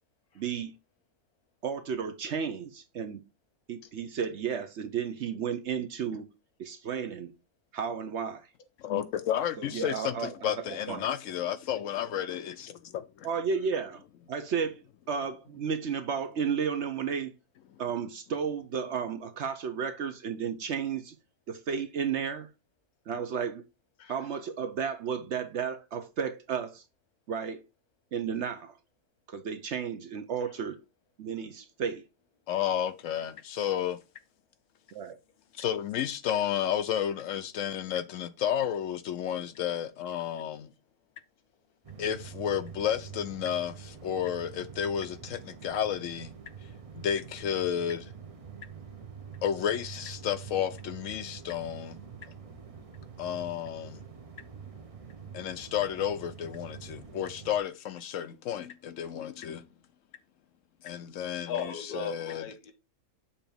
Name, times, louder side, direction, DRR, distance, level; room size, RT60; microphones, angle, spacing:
voice 1, 0.3-0.7 1.6-3.2 3.7-6.3 6.6-7.3 7.7-8.5 9.6-11.1 13.2-14.0 14.3-14.8 15.1-17.3 17.8-21.2 21.5-22.5 23.1-23.6 24.1-26.8 27.3-27.6 28.1-28.8 29.3-30.8 31.2-32.0 34.9-35.2, right 6 dB, 60° right, 0.8 m, -33 dB
voice 2, 8.8-13.3 32.5-34.0 35.5-40.7 42.0-46.3 47.0-48.1 49.4-52.0 53.2-54.0 55.3-59.7 60.8-61.5 61.9-62.4, left 9 dB, 70° left, 0.9 m, -32 dB
sound 1, 41.8-57.6, right 7 dB, 40° right, 0.5 m, -46 dB
voice 3, 61.4-62.7, left 6 dB, 90° left, 1.5 m, -37 dB
7.0 x 2.9 x 5.1 m
omnidirectional pair, 1.6 m